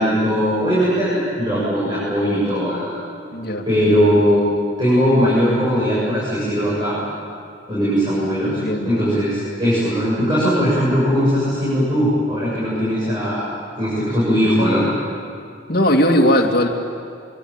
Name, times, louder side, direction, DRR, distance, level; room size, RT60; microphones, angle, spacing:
voice 1, 0.0-2.9 3.7-4.5 4.8-7.0 7.7-8.6 8.8-13.5 13.8-14.9, equal, 25° right, -9 dB, 7.5 m, -19 dB
voice 2, 3.3-3.7 8.5-9.0 15.7-16.7, equal, 50° left, 1 dB, 2.6 m, -18 dB
25.0 x 23.5 x 9.0 m, 2.3 s
head